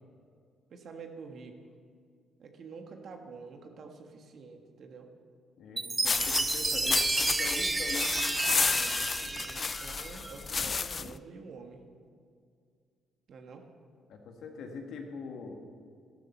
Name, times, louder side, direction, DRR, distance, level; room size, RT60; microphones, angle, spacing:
voice 1, 0.7-1.6 2.4-5.1 8.6-11.8 13.3-13.7, right 4 dB, 60° right, 4 dB, 1.5 m, -47 dB
voice 2, 5.6-8.1 14.1-15.6, left 4 dB, 75° left, 3 dB, 1.7 m, -42 dB
Chime, 5.8-10.4, right 3 dB, 20° right, 0.6 m, -31 dB
Dead leaves, 6.1-11.2, left 5 dB, 40° left, 0.3 m, -31 dB
13.5 x 11.5 x 4.5 m, 2.2 s
cardioid pair, 90°, 0 cm